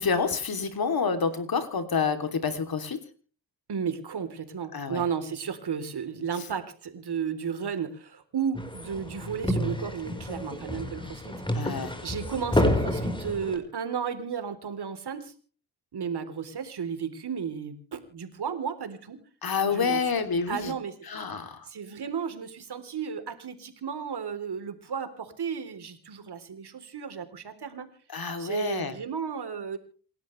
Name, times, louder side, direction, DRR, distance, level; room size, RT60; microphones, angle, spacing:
voice 1, 0.0-3.0 4.7-5.0 11.5-11.9 19.4-20.7 21.1-21.7 28.1-28.9, left 5 dB, 50° left, 8 dB, 3.2 m, -28 dB
voice 2, 3.7-11.3 12.0-15.3 15.9-19.2 19.7-20.1 20.5-20.9 21.7-27.9 28.4-29.8, right 7 dB, 55° right, 9 dB, 3.7 m, -33 dB
sound 1, 8.5-13.6, left 1 dB, 10° left, 4.7 m, -29 dB
28.5 x 12.5 x 3.3 m, 0.40 s
hypercardioid pair, 40°, 46 cm